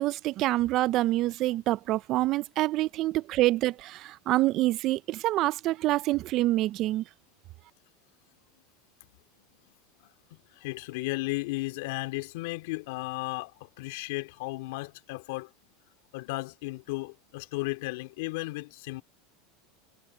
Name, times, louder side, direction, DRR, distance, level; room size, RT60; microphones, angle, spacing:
voice 1, 0.0-7.0, right 16 dB, 45° right, 0.4 m, -26 dB
voice 2, 10.3-15.5 16.1-19.0, left 22 dB, 70° left, 2.9 m, -35 dB
supercardioid pair, 130°, 0 cm